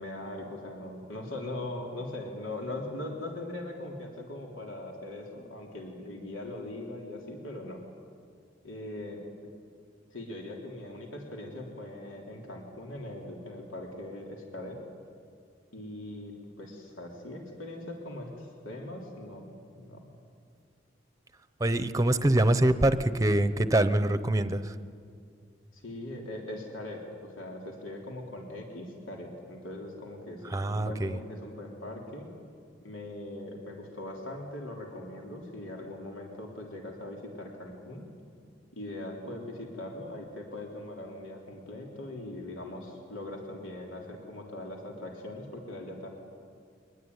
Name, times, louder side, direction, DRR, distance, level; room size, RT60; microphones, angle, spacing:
voice 1, 0.0-7.8 8.6-9.2 10.1-14.8 15.7-20.0 25.7-32.3 32.8-38.0 38.7-46.1, left 1 dB, 90° left, 0 dB, 3.6 m, -40 dB
voice 2, 21.6-24.7 30.4-31.2, right 1 dB, 15° right, 12 dB, 0.8 m, -25 dB
24.0 x 20.5 x 9.7 m, 2.3 s
head